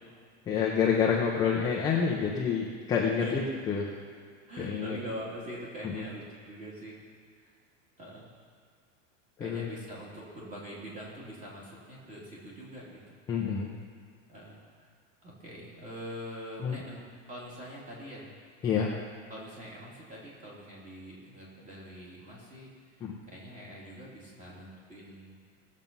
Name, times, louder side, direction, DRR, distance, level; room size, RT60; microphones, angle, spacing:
voice 1, 0.5-3.4 3.7-3.8 4.6-5.0 5.8-6.0 9.4-9.7 13.3-13.7 16.6-16.8 18.6-18.9 23.0-23.1, left 6 dB, 10° left, -3 dB, 0.5 m, -28 dB
voice 2, 4.5-7.0 7.4-7.5 8.0-8.3 9.4-13.2 14.3-14.9 15.2-18.3 19.3-25.4, equal, 20° right, -5 dB, 2.9 m, -44 dB
18.0 x 7.4 x 5.4 m, 2.1 s
supercardioid pair, 175°, 39 cm